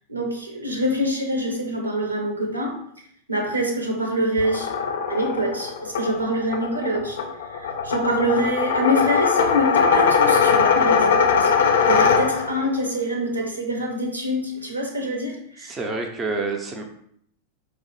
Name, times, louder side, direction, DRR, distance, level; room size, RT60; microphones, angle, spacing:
voice 1, 0.1-2.8 3.3-4.7 5.1-7.2 7.5-11.5 11.9-15.8, equal, 80° right, 1 dB, 0.7 m, -25 dB
sound 1, 4.4-12.7, left 6 dB, 60° left, 0.4 m, -21 dB
voice 2, 15.6-16.8, right 3 dB, 20° right, 3 dB, 0.4 m, -28 dB
4.8 x 2.0 x 3.1 m, 0.69 s
figure-of-eight pair, 90°, 0 cm